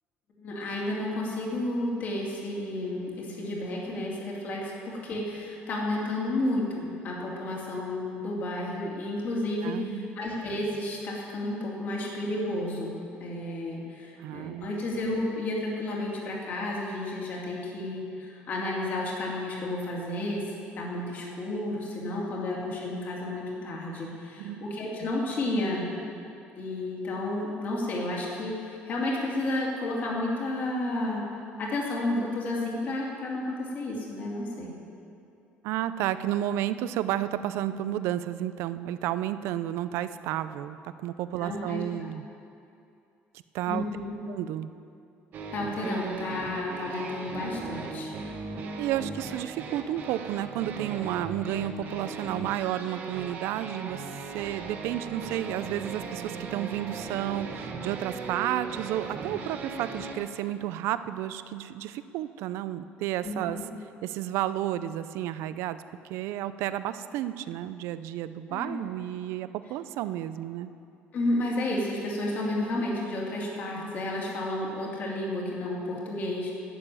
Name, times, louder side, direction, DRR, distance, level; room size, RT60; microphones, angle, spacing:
voice 1, 0.4-20.4 20.8-25.9 26.6-31.2 31.6-34.7 41.4-41.8 43.7-44.1 45.5-48.1 63.2-63.7 68.5-68.8 71.1-76.5, left 1 dB, 40° left, -3 dB, 2.4 m, -31 dB
voice 2, 9.6-10.2 14.2-14.8 24.4-24.7 25.0-25.1 35.6-42.2 43.5-43.8 44.3-44.7 48.8-54.1 54.3-63.6 64.0-65.8 66.1-70.7, right 12 dB, 75° right, 13 dB, 0.4 m, -32 dB
sound 1, 45.3-60.1, right 4 dB, 45° right, 1.1 m, -38 dB
11.0 x 6.9 x 8.8 m, 2.7 s
cardioid pair, 165°, 4 cm